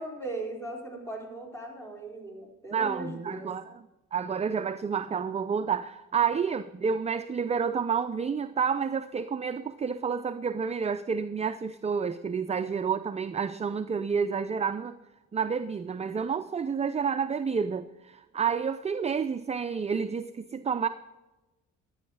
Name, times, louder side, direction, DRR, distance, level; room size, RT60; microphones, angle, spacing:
voice 1, 0.0-3.5, right 2 dB, 10° left, 4.0 m, -38 dB
voice 2, 2.7-3.8 4.1-15.0 15.3-20.9, right 6 dB, 20° right, 0.4 m, -29 dB
13.5 x 9.5 x 4.8 m
cardioid pair, 90°, 30 cm